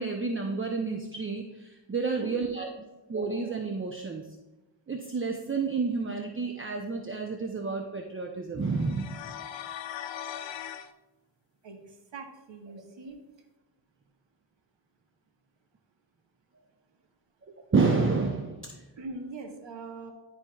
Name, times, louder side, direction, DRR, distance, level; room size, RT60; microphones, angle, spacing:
voice 1, 0.0-2.7 3.1-4.3 4.9-9.2 17.7-18.8, right 4 dB, 25° right, 2 dB, 0.8 m, -30 dB
voice 2, 2.1-2.4 11.6-13.2 19.0-20.1, right 3 dB, 60° right, 2 dB, 1.6 m, -42 dB
sound 1, 8.7-10.9, left 10 dB, 65° left, 0.6 m, -39 dB
11.5 x 4.3 x 2.4 m, 1.1 s
cardioid pair, 65°, 49 cm